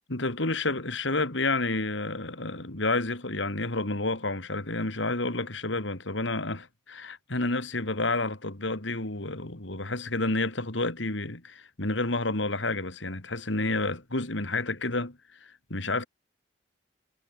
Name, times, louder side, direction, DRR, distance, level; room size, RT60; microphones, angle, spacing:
voice 1, 0.1-16.1, left 2 dB, 75° left, 3.0 m, -30 dB
head